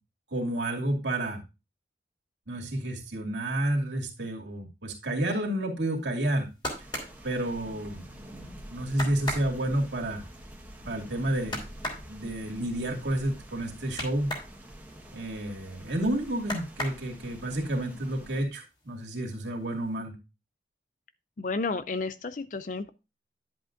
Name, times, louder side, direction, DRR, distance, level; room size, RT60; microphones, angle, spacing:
voice 1, 0.3-1.4 2.5-6.5 7.2-10.2 10.9-11.6 12.1-14.3 15.1-20.1, right 1 dB, 85° right, 1 dB, 2.5 m, -30 dB
sound 1, 6.2-8.2 8.6-8.7 8.9-14.6 14.9-16.0 16.4-17.5 17.9-18.5 18.8-19.5 19.8-19.9, left 1 dB, 25° left, 2.9 m, -38 dB
sound 2, 6.7-18.4, right 1 dB, 10° right, 1.4 m, -47 dB
voice 2, 21.4-22.9, left 3 dB, 45° left, 13 dB, 0.4 m, -32 dB
11.0 x 7.7 x 2.6 m, 0.28 s
head